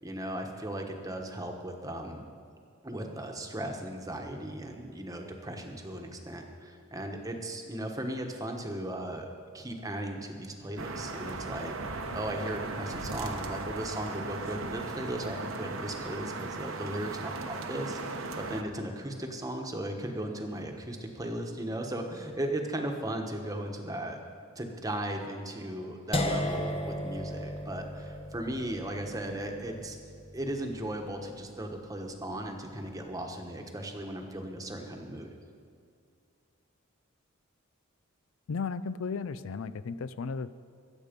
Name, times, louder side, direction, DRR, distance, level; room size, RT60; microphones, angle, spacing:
voice 1, 0.0-2.2 2.8-9.3 9.5-24.2 24.5-30.0 30.3-35.3, right 1 dB, 15° right, 3 dB, 1.2 m, -37 dB
sound 1, 10.8-18.6, right 3 dB, 70° right, 1.0 m, -37 dB
sound 2, 26.1-32.1, left 1 dB, 25° left, 0.8 m, -36 dB
voice 2, 38.5-40.5, left 5 dB, 70° left, 15 dB, 0.4 m, -34 dB
22.5 x 8.3 x 5.3 m, 2.3 s
head